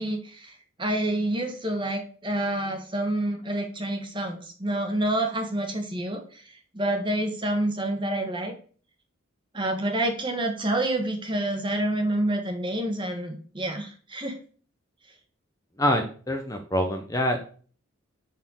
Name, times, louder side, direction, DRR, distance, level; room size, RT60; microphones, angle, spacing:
voice 1, 0.0-8.5 9.5-14.4, right 1 dB, 25° right, 5 dB, 1.6 m, -28 dB
voice 2, 15.8-17.4, equal, 15° left, 4 dB, 0.9 m, -25 dB
9.4 x 4.5 x 6.5 m, 0.43 s
head